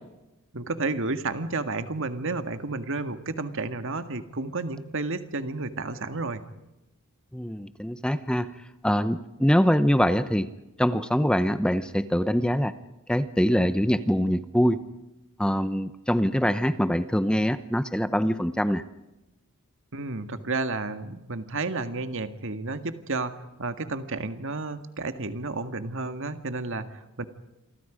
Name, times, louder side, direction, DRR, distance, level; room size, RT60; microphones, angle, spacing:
voice 1, 0.5-6.4 19.9-23.3 23.6-27.3, right 3 dB, 60° right, 9 dB, 1.8 m, -31 dB
voice 2, 7.3-8.5 8.8-10.5 10.8-12.7 13.1-14.8 15.4-18.8, equal, 5° left, 12 dB, 0.8 m, -24 dB
28.5 x 24.0 x 5.1 m, 0.97 s
head